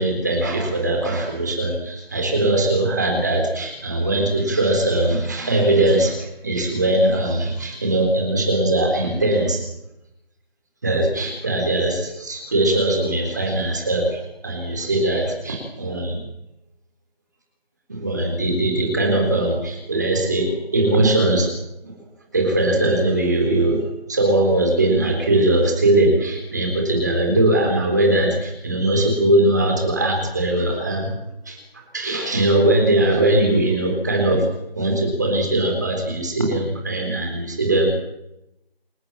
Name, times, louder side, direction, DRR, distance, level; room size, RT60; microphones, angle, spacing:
voice 1, 0.0-9.6 10.8-16.2 17.9-21.5 22.3-23.8 24.1-31.1 31.5-31.6 31.9-34.4 34.7-37.9, right 1 dB, 20° right, 1 dB, 3.9 m, -20 dB
28.0 x 14.0 x 9.0 m, 0.85 s
figure-of-eight pair, 180°, 31 cm